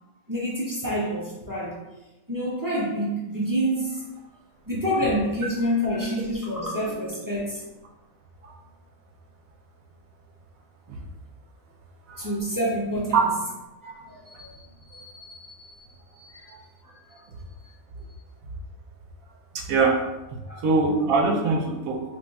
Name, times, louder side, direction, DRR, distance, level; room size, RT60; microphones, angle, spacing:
voice 1, 0.3-1.8 2.3-4.0 4.7-7.6 12.2-13.2 13.8-14.6 14.9-16.5 17.1-17.2 20.4-20.6, equal, 25° right, -6 dB, 0.5 m, -28 dB
voice 2, 19.5-20.0 20.3-22.0, right 4 dB, 80° right, 2 dB, 1.1 m, -23 dB
3.3 x 2.3 x 4.0 m, 1.0 s
omnidirectional pair, 1.5 m